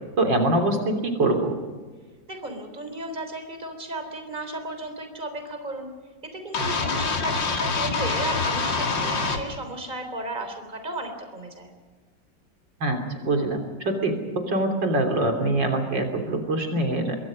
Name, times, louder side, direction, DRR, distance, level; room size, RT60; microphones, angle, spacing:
voice 1, 0.2-1.5 12.8-17.2, right 2 dB, 75° right, 4 dB, 4.0 m, -24 dB
voice 2, 2.3-5.9 6.2-11.7, right 2 dB, 25° right, 6 dB, 3.6 m, -34 dB
sound 1, 6.5-9.4, left 4 dB, 75° left, 2.9 m, -25 dB
26.5 x 23.0 x 5.3 m, 1.4 s
omnidirectional pair, 2.0 m